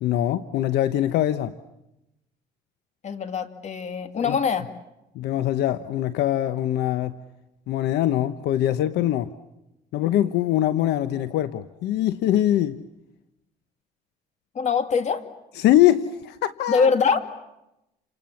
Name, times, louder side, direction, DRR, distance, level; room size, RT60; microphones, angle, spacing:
voice 1, 0.0-1.5 4.2-4.4 5.1-7.2 7.7-9.3 9.9-12.8 15.6-16.9, left 12 dB, 80° left, 11 dB, 1.1 m, -23 dB
voice 2, 3.0-4.6 14.5-15.2 16.7-17.2, left 5 dB, 45° left, 8 dB, 2.5 m, -23 dB
29.5 x 28.0 x 7.2 m, 0.90 s
cardioid pair, 110°, 17 cm